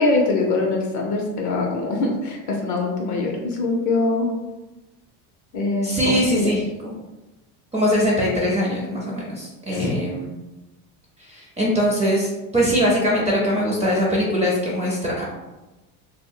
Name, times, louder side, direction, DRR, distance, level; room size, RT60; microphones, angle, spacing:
voice 1, 0.0-4.3 5.5-6.5 9.7-9.9, left 2 dB, 40° left, -1 dB, 0.5 m, -23 dB
voice 2, 5.8-6.9 7.7-10.3 11.2-15.2, equal, 15° right, -4 dB, 0.5 m, -22 dB
2.2 x 2.1 x 3.6 m, 1.1 s
supercardioid pair, 130°, 46 cm